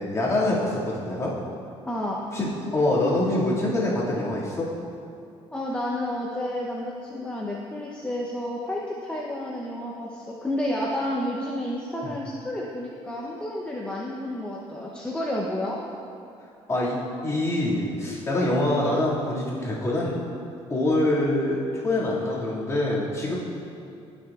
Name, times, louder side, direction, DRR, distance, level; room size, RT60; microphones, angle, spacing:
voice 1, 0.0-1.3 2.3-4.7 16.7-20.2 20.7-23.3, left 1 dB, 25° left, -7 dB, 2.2 m, -25 dB
voice 2, 1.9-2.2 5.5-15.8, left 1 dB, 10° left, -4 dB, 0.7 m, -30 dB
17.5 x 6.1 x 2.4 m, 2.5 s
cardioid pair, 125°, 11 cm